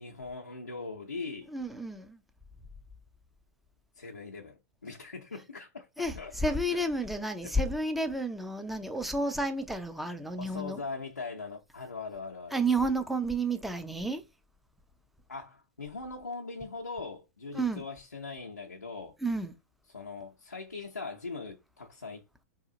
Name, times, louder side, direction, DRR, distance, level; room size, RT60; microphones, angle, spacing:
voice 1, 0.0-1.5 4.0-5.9 6.2-6.8 7.4-7.6 10.4-12.6 15.3-19.2 19.9-22.2, left 4 dB, 90° left, 0.6 m, -41 dB
voice 2, 1.5-2.2 6.0-10.8 12.5-14.2 17.5-17.8 19.2-19.5, right 2 dB, ahead, 0.5 m, -31 dB
2.8 x 2.3 x 3.8 m
figure-of-eight pair, 100°, 9 cm